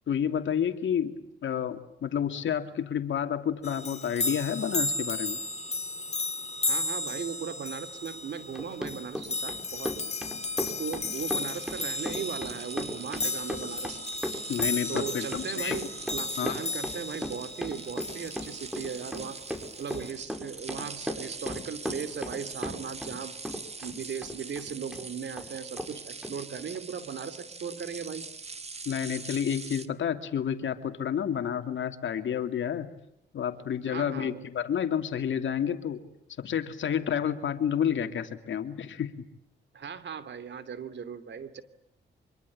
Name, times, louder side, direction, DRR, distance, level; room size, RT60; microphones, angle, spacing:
voice 1, 0.1-1.1 1.4-5.4 14.5-15.8 16.4-16.5 28.9-32.9 33.3-36.0 36.4-39.2, left 8 dB, 70° left, 7 dB, 2.7 m, -30 dB
sound 1, 3.6-18.7 19.9-20.1, left 3 dB, 35° left, 2.3 m, -34 dB
voice 2, 6.7-9.9 10.6-14.0 14.9-19.4 19.8-23.4 23.8-28.3 33.9-34.4 39.7-41.6, right 7 dB, 65° right, 12 dB, 2.9 m, -38 dB
Run, 8.4-23.2 23.4-25.0 25.4-25.5 25.8-25.9 26.2-26.3, equal, 5° right, 5.4 m, -36 dB
sound 2, 11.1-29.9, right 4 dB, 30° right, 2.0 m, -43 dB
25.5 x 24.0 x 8.7 m, 0.82 s
cardioid pair, 70°, 20 cm